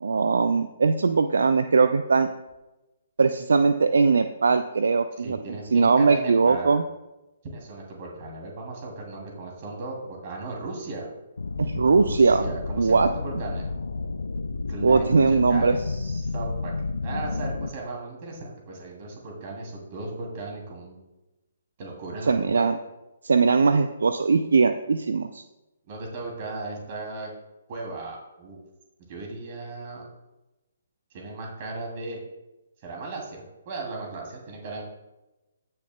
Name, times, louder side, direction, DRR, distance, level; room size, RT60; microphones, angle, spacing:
voice 1, 0.0-2.3 3.2-5.4 5.7-6.8 11.6-12.4 12.8-13.1 14.8-16.2 22.3-22.7 23.2-25.4, right 4 dB, 65° right, 9 dB, 0.5 m, -20 dB
voice 2, 5.2-6.8 7.4-11.1 11.9-13.7 14.7-15.8 16.2-16.7 17.0-21.0 21.8-22.7 25.9-27.3 27.7-28.6 29.1-30.1 31.1-32.2 32.8-34.8, right 3 dB, 40° right, 0 dB, 2.8 m, -36 dB
sound 1, 11.4-17.7, left 3 dB, 70° left, 0.5 m, -31 dB
15.5 x 6.6 x 2.3 m, 0.99 s
figure-of-eight pair, 130°, 0 cm